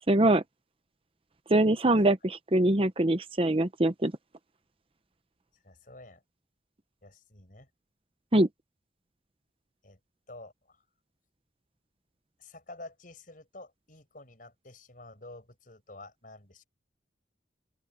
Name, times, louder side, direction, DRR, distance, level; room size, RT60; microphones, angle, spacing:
voice 1, 0.1-0.4 1.5-4.1 8.3-8.5, right 1 dB, 30° right, 0.8 m, -23 dB
voice 2, 5.6-6.2 7.0-7.7 9.8-10.0 10.3-10.8 12.4-16.7, left 2 dB, 50° left, 6.8 m, -49 dB
open air
head